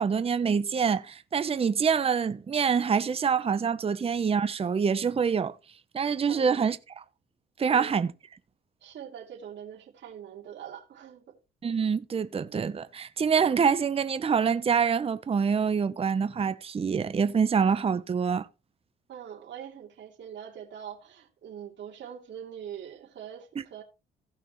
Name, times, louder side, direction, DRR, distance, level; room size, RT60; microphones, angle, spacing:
voice 1, 0.0-5.5 5.9-6.8 7.6-8.1 11.6-18.5, right 6 dB, 30° right, 0.7 m, -26 dB
voice 2, 6.3-6.7 7.7-7.9 8.8-11.4 19.1-23.8, right 9 dB, 65° right, 2.8 m, -43 dB
16.5 x 5.8 x 3.0 m
cardioid pair, 90°, 20 cm